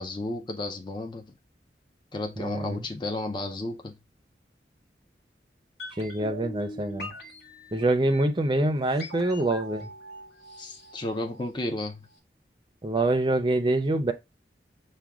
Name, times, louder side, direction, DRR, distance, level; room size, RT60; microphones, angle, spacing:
voice 1, 0.0-1.3 2.1-3.9 10.6-12.0, left 2 dB, 25° left, 0.5 m, -33 dB
voice 2, 2.4-2.9 6.0-7.1 7.7-9.9 12.8-14.1, right 2 dB, 25° right, 0.5 m, -25 dB
sound 1, 5.8-11.8 12.1-12.2, equal, 65° left, 1.2 m, -43 dB
6.0 x 2.3 x 3.5 m
head